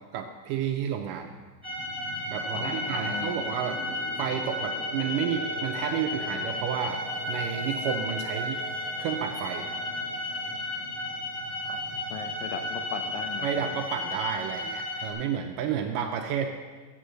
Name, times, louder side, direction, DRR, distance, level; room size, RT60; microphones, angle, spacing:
voice 1, 0.1-1.3 2.3-3.8 4.2-7.0 7.3-8.6 9.0-9.7 13.4-16.5, right 8 dB, 80° right, 5 dB, 2.0 m, -31 dB
sound 1, 1.4-11.9, left 1 dB, 40° left, 2.3 m, -47 dB
sound 2, 1.6-15.1, left 1 dB, ahead, 3.3 m, -33 dB
voice 2, 2.5-3.4 11.7-13.7, left 6 dB, 75° left, 6 dB, 2.3 m, -38 dB
8.4 x 8.2 x 7.7 m, 1.4 s
omnidirectional pair, 4.2 m